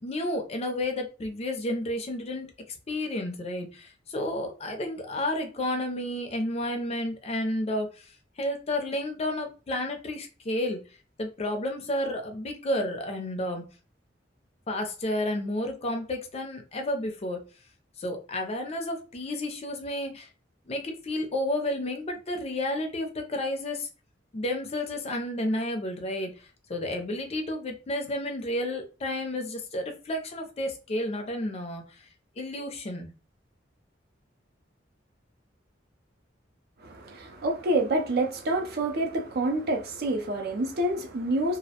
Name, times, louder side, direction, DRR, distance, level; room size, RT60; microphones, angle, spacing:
voice 1, 0.0-2.5 2.9-10.8 11.2-13.6 14.7-17.4 18.0-20.3 20.7-23.9 24.3-32.1 32.4-33.1, left 1 dB, 35° left, 0.4 m, -31 dB
voice 2, 36.8-41.6, right 1 dB, 55° right, 0.5 m, -27 dB
2.4 x 2.0 x 2.7 m
head